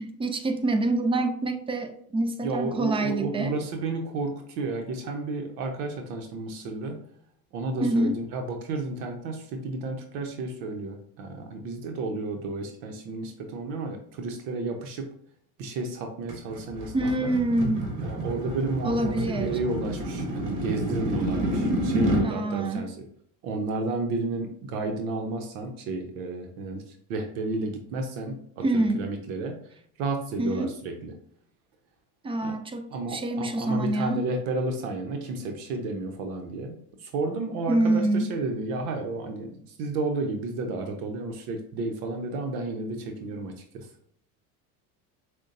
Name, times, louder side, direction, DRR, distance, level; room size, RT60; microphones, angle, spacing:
voice 1, 0.0-3.5 7.8-8.2 16.9-18.0 18.8-19.6 22.2-22.9 28.6-29.1 30.4-30.7 32.2-34.2 37.7-38.3, right 2 dB, 15° right, 7 dB, 0.3 m, -26 dB
voice 2, 2.4-7.0 7.5-15.1 15.6-17.3 18.0-23.0 23.4-31.1 32.4-32.5 32.9-43.9, right 3 dB, 70° right, 4 dB, 0.8 m, -32 dB
sound 1, 16.3-22.3, right 1 dB, 45° right, 1.3 m, -29 dB
6.2 x 2.2 x 2.6 m, 0.64 s
hypercardioid pair, 75°, 46 cm